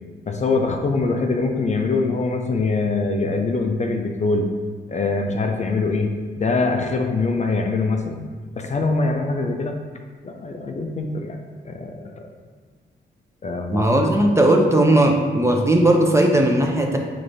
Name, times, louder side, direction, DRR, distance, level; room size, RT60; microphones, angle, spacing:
voice 1, 0.3-4.5 4.9-8.3 8.6-9.8 10.2-12.3 13.4-13.9, left 3 dB, 40° left, 3 dB, 0.4 m, -23 dB
voice 2, 13.7-17.0, right 1 dB, 15° right, 2 dB, 0.5 m, -17 dB
4.8 x 3.3 x 2.6 m, 1.5 s
cardioid pair, 75°, 19 cm